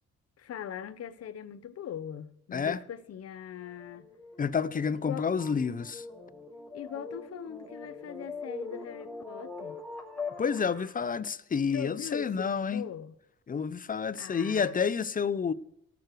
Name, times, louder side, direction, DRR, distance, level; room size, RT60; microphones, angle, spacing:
voice 1, 0.4-4.1 4.9-5.3 6.7-9.8 11.7-13.2 14.1-14.8, left 9 dB, 55° left, 0.8 m, -41 dB
sound 1, 3.6-11.0, left 3 dB, 5° left, 4.2 m, -42 dB
voice 2, 4.4-6.0 10.4-12.8 13.5-15.5, left 6 dB, 30° left, 0.6 m, -29 dB
18.0 x 6.8 x 4.7 m
cardioid pair, 90°, 30 cm